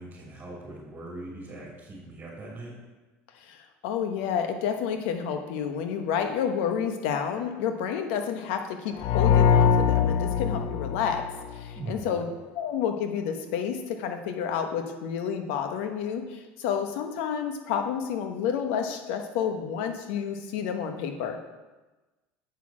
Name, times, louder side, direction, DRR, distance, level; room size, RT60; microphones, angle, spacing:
voice 1, 0.0-2.7 11.7-12.2, right 2 dB, 30° right, -7 dB, 3.1 m, -40 dB
voice 2, 3.8-11.2 11.5-12.3 12.5-21.4, left 7 dB, 75° left, 6 dB, 1.1 m, -30 dB
sound 1, 9.0-11.8, left 7 dB, 60° left, 0.5 m, -22 dB
8.2 x 6.3 x 6.0 m, 1.2 s
supercardioid pair, 100°, 7 cm